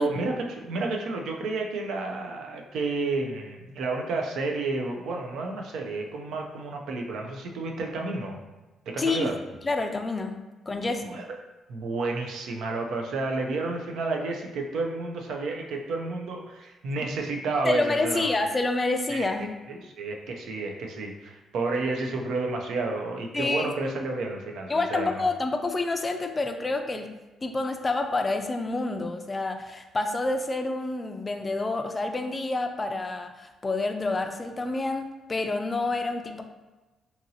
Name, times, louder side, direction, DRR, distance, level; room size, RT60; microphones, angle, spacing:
voice 1, 0.0-8.4 8.9-9.4 10.8-11.2 11.7-18.3 19.1-19.3 19.7-25.2, right 3 dB, 75° right, 1 dB, 0.4 m, -31 dB
voice 2, 9.0-9.3 9.6-10.3 10.7-11.2 17.6-19.5 23.3-23.7 24.7-27.1 27.4-36.4, left 2 dB, 25° left, 6 dB, 0.3 m, -28 dB
2.8 x 2.6 x 2.7 m, 1.1 s
cardioid pair, 90°, 0 cm